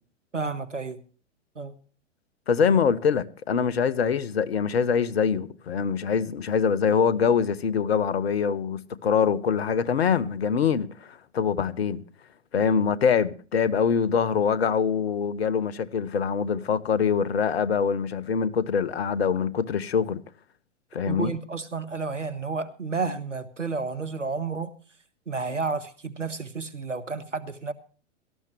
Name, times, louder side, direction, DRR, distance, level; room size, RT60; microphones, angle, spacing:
voice 1, 0.3-1.0 1.5-1.8 21.1-24.7 25.3-27.7, right 4 dB, 85° right, 1.3 m, -31 dB
voice 2, 2.5-12.0 12.5-20.2 20.9-21.3, left 6 dB, 60° left, 1.0 m, -24 dB
17.5 x 13.0 x 3.2 m
figure-of-eight pair, 110°, 36 cm